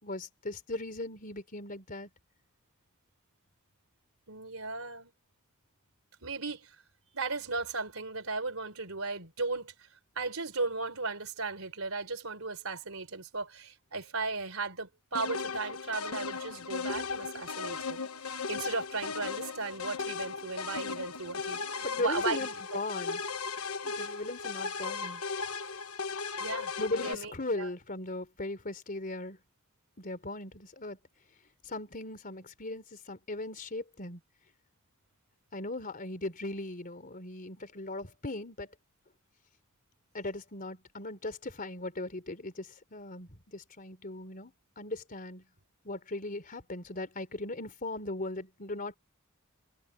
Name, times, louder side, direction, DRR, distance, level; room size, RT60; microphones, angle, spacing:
voice 1, 0.0-2.1 21.8-23.2 23.8-25.2 26.8-29.4 30.0-31.0 31.6-34.2 35.5-38.7 40.1-45.5 45.8-49.0, left 2 dB, 40° left, 3.7 m, -38 dB
voice 2, 4.3-5.1 6.2-6.8 7.1-9.7 10.2-22.5 26.4-26.7 27.0-27.7, right 3 dB, 75° right, 4.1 m, -36 dB
sound 1, 15.1-27.1, left 5 dB, 90° left, 1.2 m, -36 dB
head